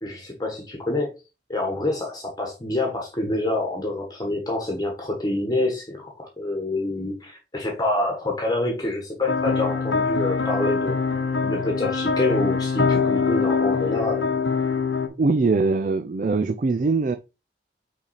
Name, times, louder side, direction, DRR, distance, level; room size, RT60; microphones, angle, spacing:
voice 1, 0.0-1.2 1.5-11.0 11.4-14.3, left 2 dB, 20° left, 1.2 m, -27 dB
sound 1, 9.3-15.1, left 5 dB, 85° left, 1.0 m, -23 dB
voice 2, 15.2-17.2, right 3 dB, 45° right, 0.4 m, -22 dB
5.9 x 4.0 x 4.1 m
head